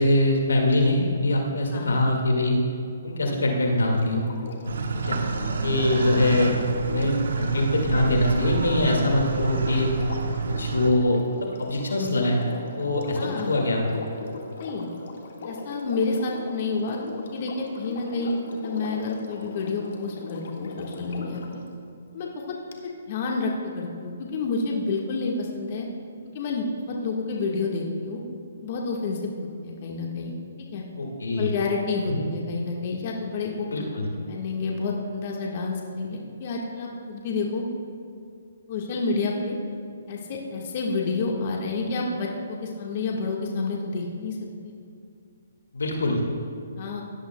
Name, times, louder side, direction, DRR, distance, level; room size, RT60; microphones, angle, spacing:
voice 1, 0.0-2.6 3.0-4.2 4.9-5.2 5.6-6.5 6.9-9.9 10.5-12.4 12.8-13.8 31.0-31.5 32.1-32.3 33.7-34.1 45.7-46.2, left 1 dB, 90° left, 1 dB, 2.0 m, -23 dB
Sink (filling or washing), 3.7-21.5 22.7-22.8, left 3 dB, 65° left, 1.7 m, -40 dB
sound 1, 4.6-10.9, right 4 dB, 75° right, 1.0 m, -28 dB
voice 2, 13.1-13.6 14.6-14.9 15.4-21.6 22.1-22.6 23.1-25.9 26.3-28.2 28.6-30.4 30.7-30.8 31.4-33.9 34.3-37.6 38.7-39.6 40.1-44.4 46.7-47.0, left 3 dB, 45° left, -1 dB, 1.6 m, -29 dB
17.5 x 11.0 x 2.3 m, 2.5 s
hypercardioid pair, 145°, 0 cm